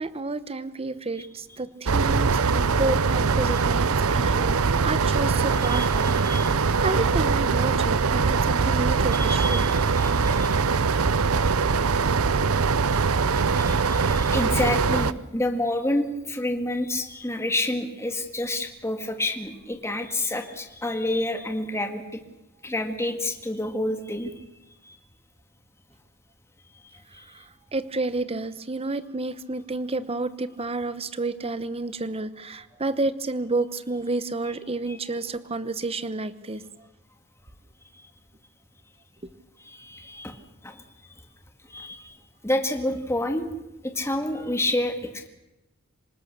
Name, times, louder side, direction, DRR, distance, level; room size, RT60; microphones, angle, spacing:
voice 1, 0.0-9.7 27.3-27.4 27.7-36.6, right 2 dB, 25° right, 14 dB, 1.0 m, -30 dB
sound 1, 1.9-15.1, right 5 dB, 70° right, 0.7 m, -22 dB
voice 2, 5.7-6.5 9.1-10.6 13.5-22.2 22.6-24.3 24.8-25.0 27.1-27.2 39.6-40.4 40.6-40.8 41.7-42.1 42.4-43.5 43.8-45.3, left 1 dB, 10° left, 5 dB, 1.9 m, -29 dB
25.5 x 20.0 x 6.8 m, 0.98 s
head